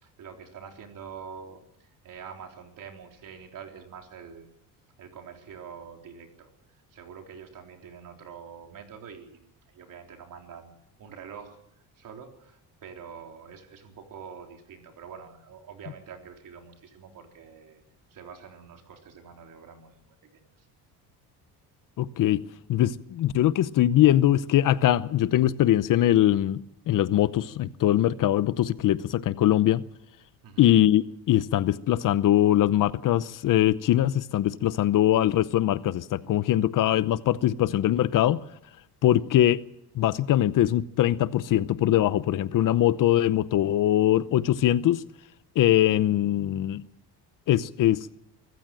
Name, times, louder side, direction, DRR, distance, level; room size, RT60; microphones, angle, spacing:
voice 1, 0.0-4.5 5.0-6.5 6.9-10.7 11.0-11.6 12.0-17.8 18.1-20.1 20.3-20.7 30.4-30.7, right 7 dB, 55° right, 3.7 m, -45 dB
voice 2, 22.0-22.4 22.7-29.8 30.6-38.4 39.0-39.6 40.0-45.0 45.6-46.8 47.5-48.1, left 12 dB, 55° left, 0.8 m, -22 dB
24.5 x 14.5 x 7.7 m
cardioid pair, 130°, 39 cm